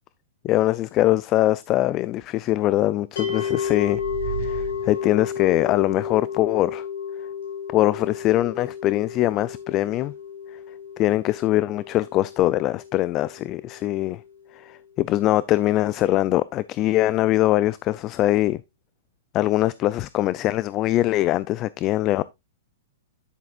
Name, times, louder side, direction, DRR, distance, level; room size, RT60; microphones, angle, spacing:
voice 1, 0.4-4.0 4.4-6.9 7.7-10.1 11.0-14.2 14.5-18.6 19.3-22.2, left 15 dB, 30° left, 0.4 m, -22 dB
sound 1, 3.2-14.3, left 7 dB, 75° left, 5.1 m, -32 dB
sound 2, 3.3-5.6, right 8 dB, 50° right, 2.2 m, -35 dB
10.0 x 7.7 x 2.5 m
hypercardioid pair, 130°, 0 cm